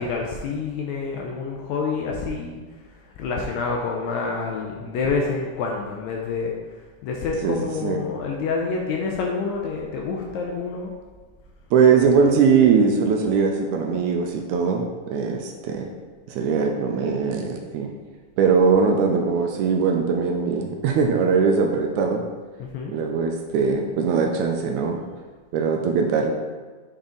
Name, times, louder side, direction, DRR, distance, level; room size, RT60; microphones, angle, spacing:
voice 1, 0.0-2.6 3.2-6.5 7.0-10.9 22.6-22.9, left 4 dB, 80° left, 0 dB, 1.7 m, -27 dB
voice 2, 11.7-15.9 16.3-17.9 18.4-22.2 22.9-25.0 25.5-26.3, right 5 dB, 80° right, 2 dB, 1.9 m, -21 dB
7.0 x 4.1 x 3.8 m, 1.4 s
omnidirectional pair, 3.7 m